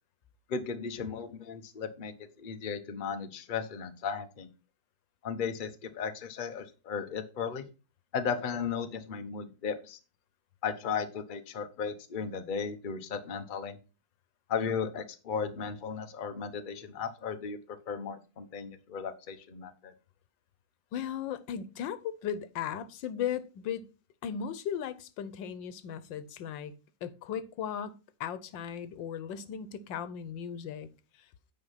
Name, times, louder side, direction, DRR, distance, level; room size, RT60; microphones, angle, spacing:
voice 1, 0.5-2.1 2.4-4.5 5.2-7.6 8.1-10.0 10.6-13.8 14.5-17.6 17.9-19.9, left 6 dB, 40° left, 0.8 m, -35 dB
voice 2, 20.9-23.9 24.2-26.7 27.0-30.9, left 8 dB, 90° left, 1.5 m, -37 dB
8.9 x 4.8 x 5.7 m
omnidirectional pair, 2.0 m